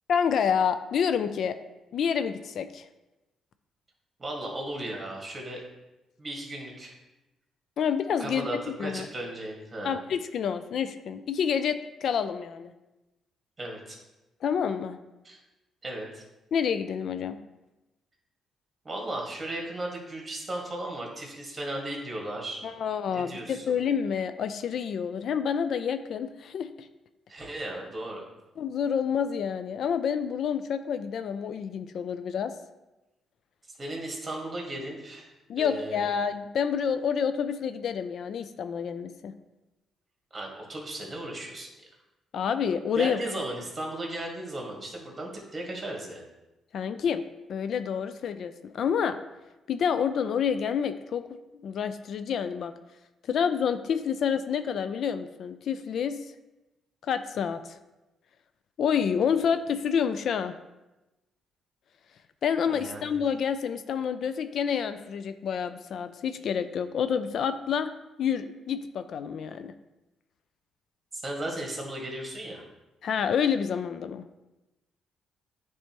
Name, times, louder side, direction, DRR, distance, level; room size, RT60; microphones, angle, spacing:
voice 1, 0.1-1.6 1.9-2.9 7.8-8.5 8.8-9.1 9.8-12.7 14.4-15.0 16.5-17.4 22.6-26.9 28.6-32.5 35.5-39.3 42.3-43.2 46.7-47.2 47.5-49.2 49.7-51.3 51.6-52.7 53.3-56.2 57.0-57.8 58.8-60.5 62.4-67.9 68.2-69.7 73.0-74.2, left 7 dB, 65° left, 11 dB, 0.3 m, -28 dB
voice 2, 4.2-5.6 6.2-7.0 8.2-10.0 13.6-14.0 15.2-15.4 15.8-16.2 18.9-22.7 23.1-23.8 27.3-28.2 33.7-36.1 40.3-41.9 42.9-46.2 62.6-63.1 71.1-72.6, right 1 dB, 25° right, 0 dB, 1.7 m, -36 dB
9.6 x 3.4 x 2.9 m, 1.0 s
cardioid pair, 90°, 0 cm